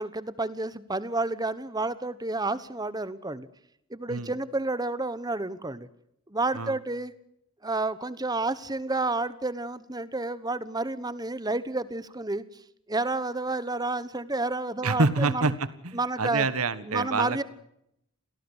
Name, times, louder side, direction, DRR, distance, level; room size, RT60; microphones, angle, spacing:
voice 1, 0.0-3.5 3.9-5.9 6.3-7.1 7.6-12.4 12.9-15.5 15.9-16.5 16.9-17.4, right 2 dB, 15° right, 15 dB, 1.1 m, -30 dB
voice 2, 14.8-17.4, right 3 dB, 80° right, 14 dB, 1.5 m, -27 dB
27.5 x 18.0 x 8.1 m, 0.79 s
head